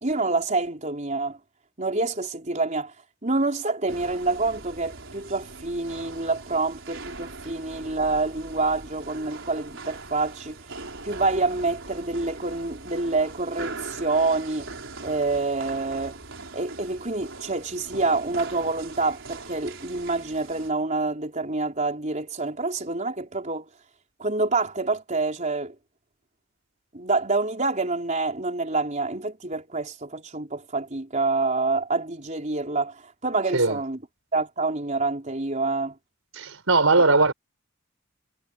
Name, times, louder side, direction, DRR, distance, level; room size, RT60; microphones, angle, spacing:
voice 1, 0.0-1.4 1.8-2.9 3.2-10.6 11.0-14.7 15.0-16.2 16.5-23.7 24.2-25.7 26.9-34.0 34.3-35.9, right 3 dB, 35° right, 4.1 m, -27 dB
sound 1, 3.9-20.7, right 3 dB, 65° right, 5.4 m, -41 dB
voice 2, 36.4-37.3, right 3 dB, 90° right, 4.6 m, -19 dB
head